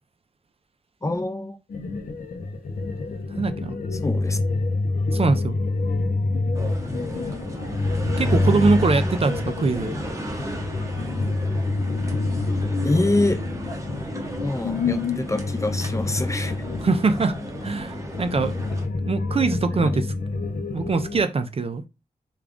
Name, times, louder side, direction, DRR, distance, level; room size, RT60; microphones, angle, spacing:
voice 1, 1.0-1.6 3.9-4.4 6.9-7.4 12.8-13.4 14.4-16.6 19.7-20.0, left 2 dB, 20° left, 0.4 m, -26 dB
sound 1, 1.7-21.2, left 3 dB, 75° left, 0.5 m, -27 dB
voice 2, 3.3-3.8 5.1-5.6 8.2-9.9 16.8-17.4 17.6-18.5 19.0-20.1 20.7-21.8, right 4 dB, 45° right, 0.4 m, -23 dB
sound 2, 6.6-18.9, equal, 20° right, 0.8 m, -32 dB
3.6 x 2.3 x 3.5 m
wide cardioid pair, 115°, 14 cm